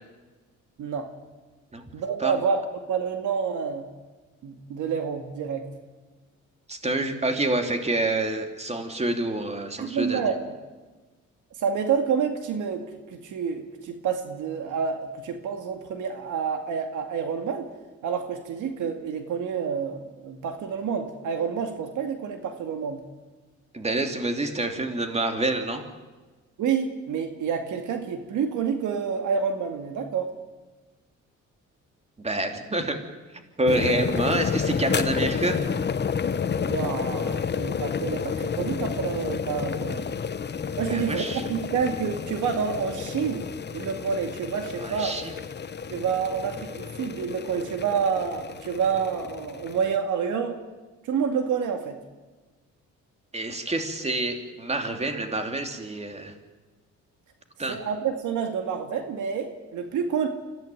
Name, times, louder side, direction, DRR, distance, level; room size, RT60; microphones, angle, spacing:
voice 1, 1.9-2.6 2.9-3.9 4.4-5.7 9.8-10.4 11.6-17.7 18.0-23.0 26.6-30.3 36.7-40.1 40.8-45.2 45.9-50.6 51.0-52.0 57.7-60.3, right 6 dB, 80° right, 6 dB, 2.3 m, -28 dB
voice 2, 6.7-10.2 23.7-25.8 32.2-33.0 33.6-35.6 40.9-41.4 44.8-45.3 53.3-56.3 57.6-57.8, right 2 dB, 20° right, 5 dB, 3.0 m, -27 dB
sound 1, 33.7-50.0, left 6 dB, 35° left, 1.0 m, -30 dB
25.5 x 15.5 x 9.2 m, 1.2 s
cardioid pair, 90°, 30 cm